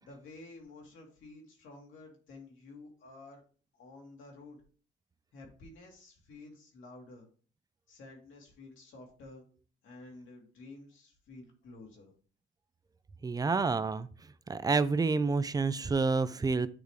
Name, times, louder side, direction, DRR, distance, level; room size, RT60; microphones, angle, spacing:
voice 1, 0.0-3.4 3.7-4.6 5.3-7.3 7.9-9.4 9.8-12.1, left 2 dB, 75° left, 0 dB, 2.2 m, -51 dB
voice 2, 13.2-14.1 14.5-16.7, right 4 dB, 20° right, 14 dB, 0.4 m, -28 dB
8.8 x 3.4 x 3.2 m, 0.41 s
cardioid pair, 90°, 20 cm